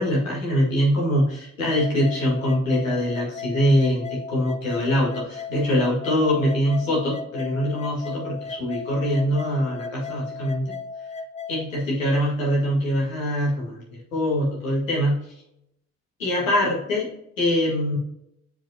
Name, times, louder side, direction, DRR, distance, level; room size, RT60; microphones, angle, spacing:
voice 1, 0.0-10.7 11.5-13.8 14.1-15.2 16.2-17.1 17.4-18.0, equal, 85° left, -5 dB, 1.8 m, -23 dB
sound 1, 1.6-11.6, left 4 dB, 15° left, 0.6 m, -36 dB
7.6 x 4.9 x 2.8 m, 0.80 s
figure-of-eight pair, 40°, 39 cm